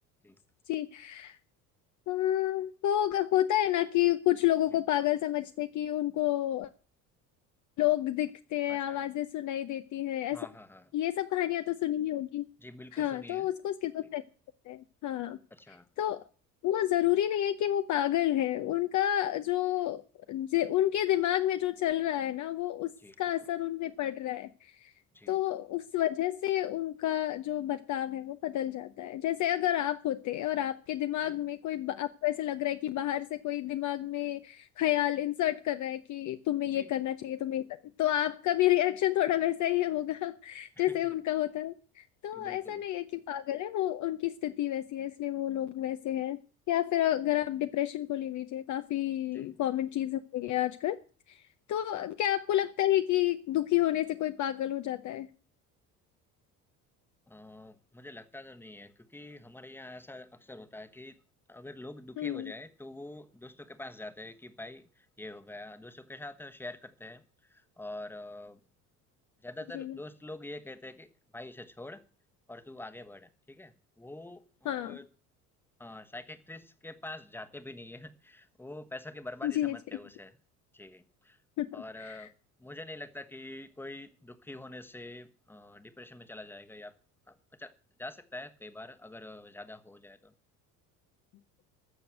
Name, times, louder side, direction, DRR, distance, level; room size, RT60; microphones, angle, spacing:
voice 1, 0.7-1.4 2.1-6.7 7.8-10.4 10.9-12.4 12.9-14.2 14.7-15.4 16.0-16.2 16.6-20.0 20.3-22.9 23.2-24.9 25.3-37.6 38.0-46.4 46.7-51.0 51.3-51.4 51.7-55.3 62.2-62.5 69.7-69.9 74.6-75.0 79.4-79.8 81.6-82.3, left 13 dB, 40° left, 0.7 m, -30 dB
voice 2, 8.7-9.0 10.3-10.9 12.6-13.5 14.0-14.1 15.5-15.9 23.0-23.1 25.1-25.4 31.2-31.4 36.7-36.9 40.8-41.1 42.3-42.8 49.3-49.6 51.9-52.1 57.3-61.2 61.5-68.6 69.4-72.0 72.5-75.1 75.8-80.4 80.7-81.4 81.7-82.3 82.6-86.9 87.3-87.7 88.0-90.3, left 2 dB, 5° left, 1.2 m, -46 dB
14.5 x 6.9 x 7.5 m
figure-of-eight pair, 60°, 48 cm